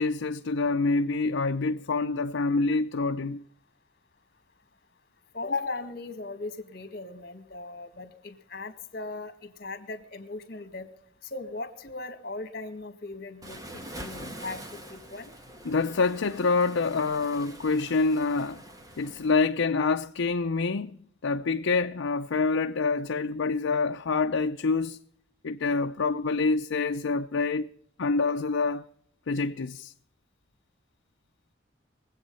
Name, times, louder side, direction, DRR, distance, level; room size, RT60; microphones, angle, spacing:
voice 1, 0.0-3.4 15.6-18.6 19.0-25.0 25.4-27.7 28.0-28.9 29.3-29.9, left 4 dB, 90° left, 0.6 m, -26 dB
voice 2, 5.3-10.9 11.2-15.3, left 3 dB, 50° left, 2.0 m, -38 dB
Waves surf, 13.4-19.3, right 1 dB, 20° right, 1.4 m, -44 dB
22.5 x 8.4 x 5.5 m
head